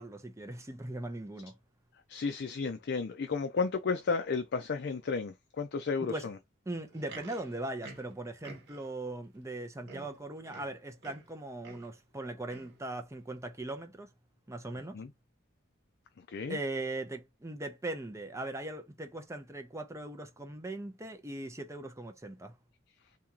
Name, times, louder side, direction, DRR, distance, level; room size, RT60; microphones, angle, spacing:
voice 1, 0.0-1.5 6.0-6.3 6.7-14.1 14.5-15.0 16.5-22.5, right 2 dB, 15° right, 0.7 m, -39 dB
voice 2, 2.1-6.4 14.9-15.1 16.3-16.6, left 4 dB, 55° left, 0.5 m, -33 dB
Livestock farm animals working animals, 6.8-9.0 9.5-9.6 9.8-11.3 11.6-12.0 12.5-12.8 13.5-13.6, right 3 dB, 60° right, 1.3 m, -50 dB
2.9 x 2.9 x 3.7 m
head